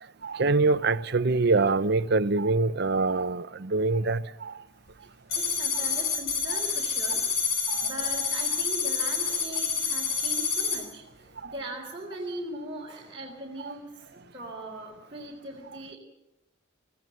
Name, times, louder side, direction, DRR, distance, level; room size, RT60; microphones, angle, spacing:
voice 1, 0.2-4.6 6.5-6.6 7.7-7.9 13.6-13.7, right 3 dB, 50° right, 0.7 m, -25 dB
sound 1, 5.3-10.8, left 5 dB, 50° left, 3.6 m, -28 dB
voice 2, 5.3-7.2 7.8-16.0, right 1 dB, 25° right, 3.9 m, -40 dB
24.5 x 15.5 x 7.8 m
head